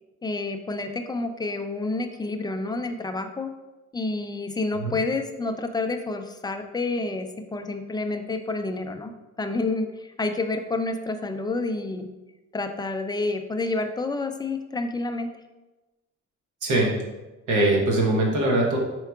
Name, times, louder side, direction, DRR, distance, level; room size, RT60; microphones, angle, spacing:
voice 1, 0.2-3.5 3.9-9.1 9.4-12.1 12.5-15.3, left 3 dB, 15° left, 6 dB, 0.3 m, -29 dB
voice 2, 16.6-16.9 17.5-18.8, right 1 dB, 85° right, -1 dB, 1.1 m, -22 dB
4.5 x 4.5 x 2.3 m, 1.1 s
cardioid pair, 90°, 30 cm